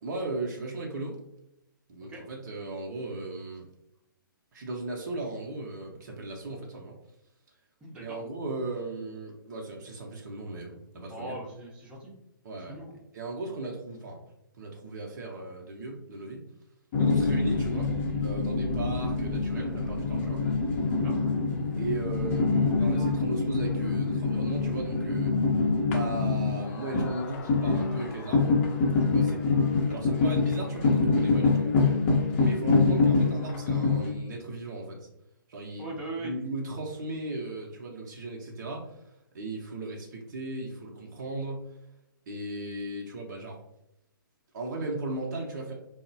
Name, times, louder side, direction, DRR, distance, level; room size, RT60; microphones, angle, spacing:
voice 1, 0.0-1.2 1.9-3.6 4.5-6.9 8.0-11.4 12.4-12.7 13.1-14.2 14.6-16.4 17.0-17.9 18.2-20.4 21.8-25.4 25.8-28.6 29.0-29.4 29.9-31.7 32.4-35.1 35.5-35.9 36.2-39.0 39.3-41.6 42.3-43.6 44.5-45.7, right 2 dB, 55° right, -1 dB, 0.6 m, -36 dB
voice 2, 7.8-8.2 11.1-12.1 12.7-12.9 21.0-21.2 35.8-36.3, right 2 dB, 10° right, -4 dB, 0.6 m, -40 dB
sound 1, 16.9-34.1, left 3 dB, 35° left, 0.6 m, -25 dB
Wind, 17.0-25.1, equal, 80° left, 0.4 m, -42 dB
3.5 x 2.0 x 2.6 m, 0.85 s
figure-of-eight pair, 130°, 12 cm